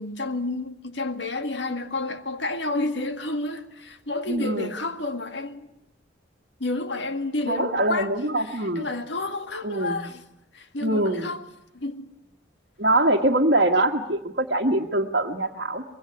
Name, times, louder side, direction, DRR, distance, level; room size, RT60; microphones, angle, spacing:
voice 1, 0.0-5.7 6.6-8.1 8.4-10.2 10.5-11.5 11.7-12.1, left 2 dB, 65° left, 1.9 m, -30 dB
voice 2, 4.3-4.7 7.5-8.9 9.6-10.1 10.8-11.3 12.8-15.8, right 1 dB, 50° right, 1.5 m, -23 dB
24.5 x 22.0 x 9.7 m
head